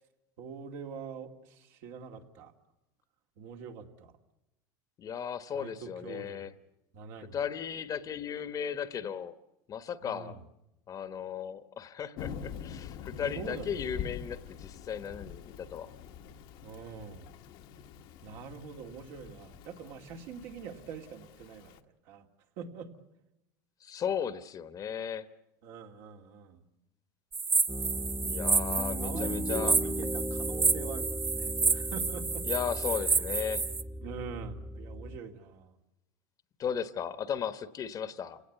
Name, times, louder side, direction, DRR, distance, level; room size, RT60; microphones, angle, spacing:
voice 1, 0.4-2.5 3.4-4.1 5.5-6.5 6.9-7.4 10.0-10.4 13.3-14.1 16.6-17.3 18.2-21.8 22.1-22.3 22.6-22.9 25.6-26.7 28.6-32.5 34.0-35.7, right 6 dB, 70° right, 3 dB, 2.5 m, -44 dB
voice 2, 5.0-6.5 7.3-9.3 9.7-10.4 10.9-15.9 23.8-25.3 28.2-29.8 32.4-33.6 36.6-38.4, left 8 dB, 40° left, 13 dB, 1.2 m, -36 dB
Thunder / Rain, 12.2-21.8, left 7 dB, 65° left, 1.3 m, -45 dB
sound 1, 27.3-33.8, right 4 dB, 20° right, 1.0 m, -30 dB
Piano, 27.7-35.2, equal, ahead, 1.1 m, -37 dB
28.5 x 18.0 x 8.2 m, 0.93 s
supercardioid pair, 110°, 10 cm